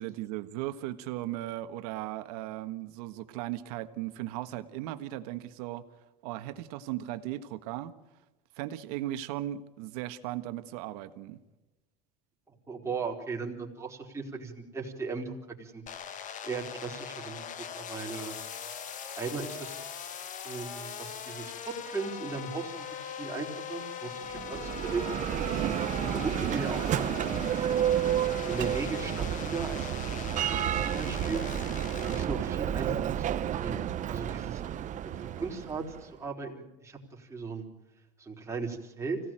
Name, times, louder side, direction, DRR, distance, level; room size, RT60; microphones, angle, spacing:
voice 1, 0.0-5.8 6.2-7.9 8.5-11.4 25.5-25.8 32.1-32.3, right 14 dB, 85° right, 10 dB, 1.5 m, -37 dB
voice 2, 12.5-15.8 16.4-17.5 17.8-18.4 19.2-19.8 20.4-25.0 26.0-27.5 28.5-31.4 32.1-33.3 33.6-33.8 34.1-34.8 35.2-37.7 38.2-39.2, right 4 dB, 15° right, -1 dB, 4.1 m, -37 dB
sound 1, 15.9-32.3, left 7 dB, 40° left, 1.5 m, -41 dB
Bell, 24.2-36.0, right 10 dB, 40° right, 1.0 m, -31 dB
25.5 x 17.0 x 9.0 m, 1.1 s
supercardioid pair, 125°, 19 cm